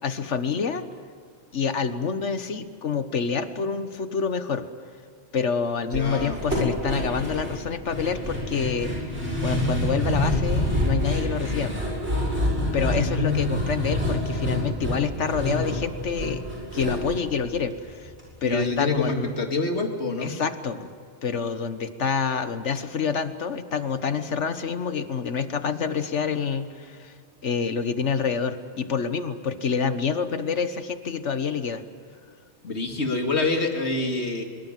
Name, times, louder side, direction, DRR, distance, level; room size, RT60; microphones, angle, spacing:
voice 1, 0.0-0.8 1.5-4.7 5.3-8.9 9.4-11.7 12.7-16.4 16.7-18.1 18.4-19.3 20.2-20.9 21.2-27.1 27.4-31.8, left 6 dB, 85° left, 10 dB, 1.6 m, -27 dB
voice 2, 5.9-6.4 12.9-13.7 18.4-20.3 32.6-34.4, left 3 dB, 70° left, 4 dB, 2.7 m, -26 dB
sound 1, 5.9-18.2 18.5-18.6 18.9-19.0, left 1 dB, 70° right, 7.5 m, -27 dB
24.0 x 22.5 x 7.5 m, 2.3 s
omnidirectional pair, 1.2 m